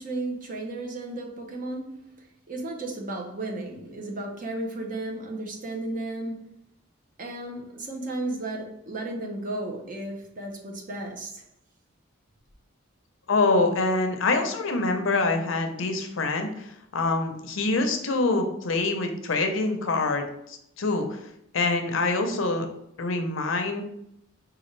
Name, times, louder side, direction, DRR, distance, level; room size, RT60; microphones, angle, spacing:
voice 1, 0.0-2.1 2.5-6.4 7.2-11.4, right 2 dB, 40° right, 1 dB, 0.7 m, -34 dB
voice 2, 13.3-21.2 21.5-22.7 23.0-23.8, left 3 dB, 75° left, 5 dB, 0.6 m, -25 dB
4.9 x 2.4 x 3.1 m, 0.78 s
head